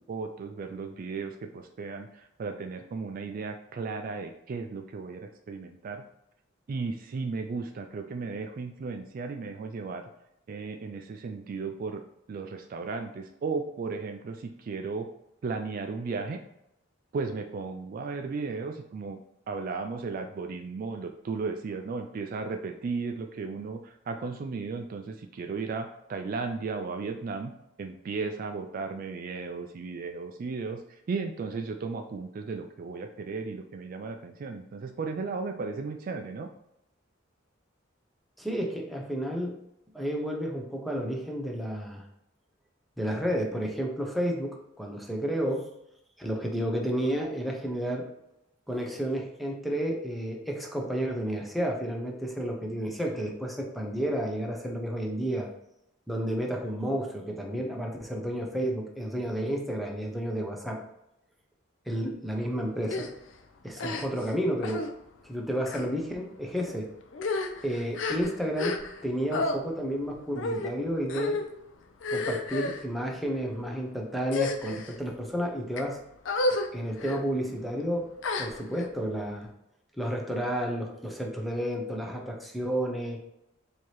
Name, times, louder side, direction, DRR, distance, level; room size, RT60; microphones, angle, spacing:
voice 1, 0.0-6.0 6.7-10.1 10.5-12.0 12.3-15.1 15.4-16.4 17.1-19.2 19.5-27.5 27.8-36.5, right 4 dB, 45° right, 5 dB, 0.3 m, -35 dB
voice 2, 38.4-39.6 39.9-42.0 43.0-45.7 46.2-48.0 48.7-55.5 56.1-60.8 61.9-63.1 63.6-64.9 65.2-66.9 67.6-71.4 72.1-76.0 76.7-78.1 78.4-79.5 80.0-83.2, equal, ahead, 0 dB, 0.6 m, -31 dB
sound 1, 62.9-63.1 63.8-64.3 64.6-64.9 65.6-65.9 66.6-66.7 67.1-69.0 69.3-69.6 70.4-70.7 71.1-71.5 72.0-72.8 73.5-73.8 74.3-75.0 75.5-75.8 76.3-76.7 77.0-77.2 78.2-78.9, left 3 dB, 70° left, 0.5 m, -31 dB
4.6 x 2.8 x 3.0 m, 0.82 s
head